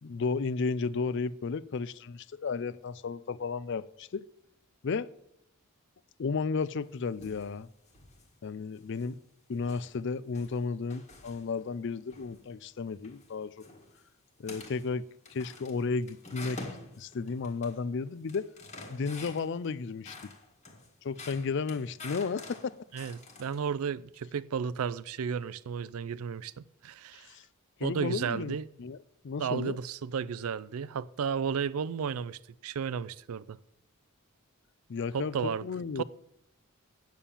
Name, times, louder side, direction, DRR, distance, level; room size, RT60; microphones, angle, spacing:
voice 1, 0.0-4.3 4.8-5.1 6.2-7.7 8.4-9.2 9.5-13.7 14.4-16.6 17.0-18.5 18.9-20.3 21.0-22.7 27.3-27.4 27.8-29.0 29.2-29.8 34.9-36.0, left 4 dB, 55° left, 0.4 m, -33 dB
sound 1, 6.8-7.5 7.9-8.3 8.8-9.2 9.6-11.7 12.1-12.4 12.9-13.3 13.6-14.0 14.4-14.9 15.3-17.8 18.1-19.7 20.1-23.7, left 3 dB, 30° left, 1.6 m, -48 dB
voice 2, 22.9-27.3 27.8-28.7 29.4-33.6 35.1-35.7 36.0-36.1, right 6 dB, 75° right, 0.4 m, -33 dB
9.1 x 7.1 x 6.9 m
head